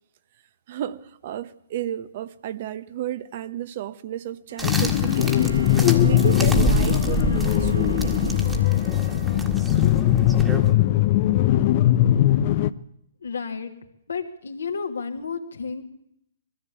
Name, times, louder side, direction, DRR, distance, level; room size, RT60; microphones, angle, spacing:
voice 1, 0.7-5.6 6.0-8.4, right 11 dB, 50° right, 1.1 m, -32 dB
Bowed string instrument, 4.5-10.2, right 3 dB, 80° right, 1.4 m, -39 dB
sound 1, 4.6-12.7, left 13 dB, 40° left, 0.7 m, -20 dB
sound 2, 4.6-10.7, right 3 dB, 10° right, 1.8 m, -28 dB
voice 2, 13.2-13.7 14.1-15.8, left 5 dB, 80° left, 2.5 m, -31 dB
21.0 x 14.5 x 8.6 m
hypercardioid pair, 130°, 0 cm